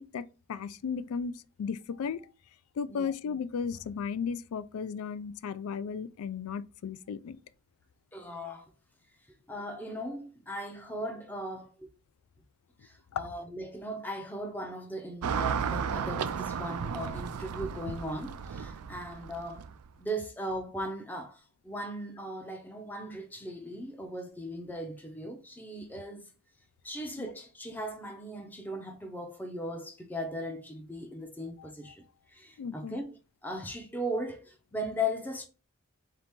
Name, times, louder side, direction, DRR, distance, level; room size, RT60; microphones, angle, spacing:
voice 1, 0.0-1.3 1.6-2.3 2.8-7.4 13.1-13.3 27.2-27.3 31.6-31.7 32.6-33.0, left 6 dB, 80° left, 0.3 m, -35 dB
voice 2, 8.1-8.7 9.5-11.9 12.8-19.7 20.0-26.3 26.8-32.0 32.3-35.5, equal, 10° left, 0.5 m, -38 dB
Car passing by / Traffic noise roadway noise, 15.2-19.9, right 7 dB, 85° right, 0.3 m, -34 dB
3.9 x 2.8 x 3.5 m
head